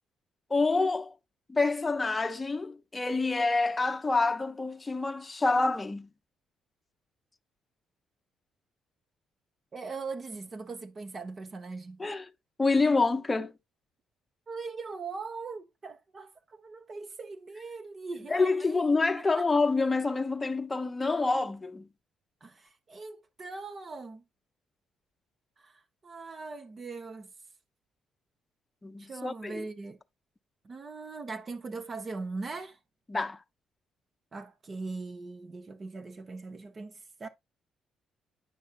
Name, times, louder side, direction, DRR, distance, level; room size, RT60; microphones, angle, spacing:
voice 1, 0.5-1.1 1.5-6.1 12.0-12.2 12.6-13.5 18.3-21.9 28.8-29.7 33.1-33.4, left 3 dB, 25° left, 0.8 m, -27 dB
voice 2, 9.7-12.0 14.5-18.8 19.3-19.4 22.4-24.2 25.6-27.3 29.1-30.0 30.6-32.8 34.3-37.3, right 4 dB, 40° right, 1.2 m, -40 dB
9.4 x 5.5 x 2.6 m
hypercardioid pair, 50°, 0 cm